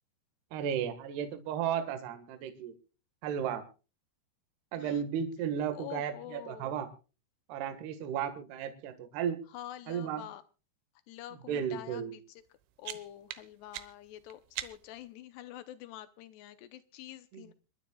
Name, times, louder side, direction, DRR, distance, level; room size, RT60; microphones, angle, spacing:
voice 1, 0.5-2.7 3.2-3.6 4.7-6.9 7.5-9.4 9.9-10.2 11.5-12.2 17.3-17.4, right 8 dB, 65° right, 8 dB, 3.3 m, -34 dB
voice 2, 5.7-6.8 9.5-10.4 11.1-12.2 12.8-17.5, left 13 dB, 75° left, 12 dB, 2.5 m, -46 dB
sound 1, 12.4-15.1, right 14 dB, 85° right, 3.4 m, -44 dB
27.0 x 12.5 x 2.3 m, 0.34 s
omnidirectional pair, 5.6 m